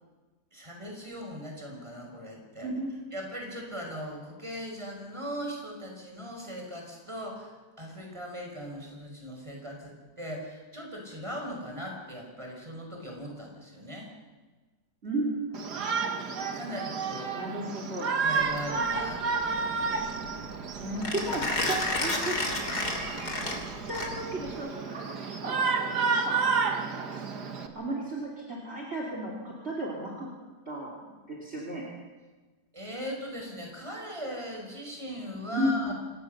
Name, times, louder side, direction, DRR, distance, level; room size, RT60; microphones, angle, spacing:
voice 1, 0.5-2.7 3.1-14.1 16.5-17.4 18.2-19.2 19.5-19.7 21.3-21.8 32.7-35.9, equal, 20° right, 1 dB, 5.5 m, -39 dB
voice 2, 2.6-2.9 15.0-15.6 17.3-18.1 20.8-22.7 23.9-25.0 25.4-25.9 26.2-26.4 27.0-27.2 27.7-30.3 30.7-31.8 35.5-35.9, right 1 dB, 40° right, -2 dB, 3.4 m, -34 dB
Shout, 15.5-27.7, right 5 dB, 80° right, 2.3 m, -31 dB
Mechanisms, 18.4-24.5, left 2 dB, 75° left, 3.8 m, -32 dB
26.5 x 17.5 x 6.7 m, 1.3 s
omnidirectional pair, 1.7 m